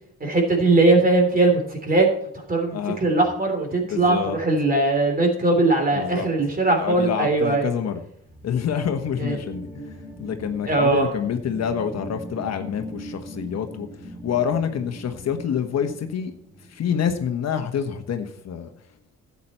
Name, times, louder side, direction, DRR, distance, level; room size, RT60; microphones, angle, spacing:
voice 1, 0.2-2.1 2.3-7.7 9.2-9.4 10.6-11.0, right 2 dB, 30° right, 3 dB, 3.4 m, -20 dB
voice 2, 3.8-4.4 5.9-6.3 6.8-8.0 8.4-16.3 16.6-18.7, left 8 dB, 60° left, 6 dB, 1.2 m, -27 dB
sound 1, 8.2-17.2, equal, 10° right, 2.9 m, -40 dB
11.5 x 8.5 x 4.3 m, 0.67 s
cardioid pair, 90°, 30 cm